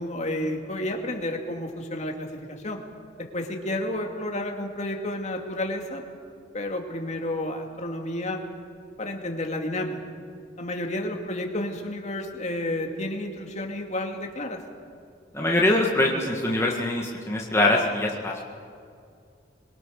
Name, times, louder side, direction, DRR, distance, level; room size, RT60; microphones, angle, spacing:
voice 1, 0.0-2.8 3.2-6.0 6.5-8.4 9.0-10.0 10.6-14.6, left 1 dB, 35° left, 3 dB, 2.4 m, -31 dB
voice 2, 15.3-18.4, left 1 dB, 15° left, -2 dB, 1.8 m, -23 dB
26.0 x 22.5 x 6.6 m, 2.3 s
head